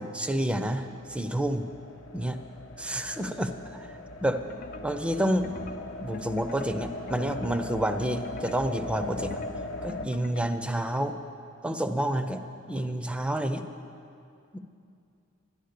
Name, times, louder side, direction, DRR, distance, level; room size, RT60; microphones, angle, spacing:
voice 1, 0.0-1.7 2.1-2.4 2.8-3.9 4.2-4.4 4.8-5.5 6.0-9.4 9.8-11.2 11.6-12.4 12.7-13.7 14.5-14.6, right 1 dB, 5° right, 8 dB, 0.5 m, -29 dB
sound 1, 0.8-10.1, left 1 dB, 75° left, 0.8 m, -40 dB
sound 2, 4.4-10.7, left 5 dB, 45° left, 0.4 m, -45 dB
11.5 x 11.0 x 6.6 m, 2.6 s
head